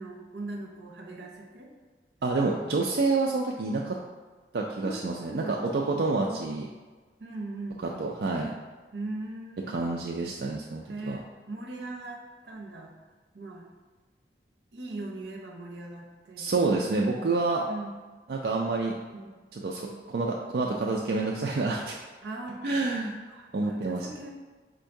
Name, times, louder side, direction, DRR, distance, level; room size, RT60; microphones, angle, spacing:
voice 1, 0.0-1.7 2.4-2.6 4.8-5.9 6.3-6.6 7.2-8.1 8.9-10.0 10.9-12.9 13.3-13.7 14.7-16.5 17.1-17.4 17.7-18.0 19.1-19.3 19.8-20.1 22.2-22.6 23.3-24.3, right 2 dB, 85° right, 1 dB, 0.7 m, -40 dB
voice 2, 2.2-4.0 4.5-6.7 8.0-8.5 9.7-11.2 16.4-17.6 18.3-19.0 19.5-22.0 22.6-23.2 23.5-24.1, right 3 dB, 65° right, -1 dB, 0.4 m, -28 dB
4.5 x 2.6 x 4.5 m, 1.4 s
head